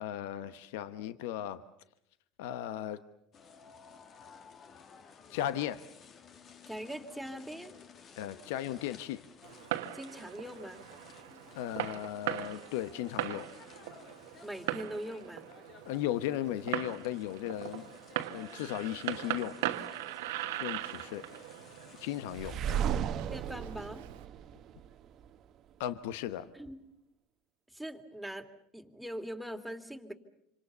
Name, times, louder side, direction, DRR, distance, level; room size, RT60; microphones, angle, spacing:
voice 1, 0.0-1.7 2.4-3.0 5.3-5.8 8.2-9.2 11.5-13.5 15.9-17.9 18.3-19.9 20.6-21.6 22.0-23.0 25.8-26.5, left 12 dB, 75° left, 13 dB, 0.9 m, -36 dB
sound 1, 3.3-22.6, left 6 dB, 45° left, 2.0 m, -55 dB
voice 2, 6.7-7.7 9.9-10.8 14.4-15.5 23.3-24.0 26.5-26.8 27.7-28.5 28.7-30.1, equal, ahead, 4 dB, 3.0 m, -41 dB
Fireworks, 9.4-24.3, right 14 dB, 80° right, 1.3 m, -40 dB
sound 2, 22.3-25.3, right 9 dB, 50° right, 1.1 m, -34 dB
27.5 x 25.5 x 7.0 m, 0.77 s
hypercardioid pair, 80°, 0 cm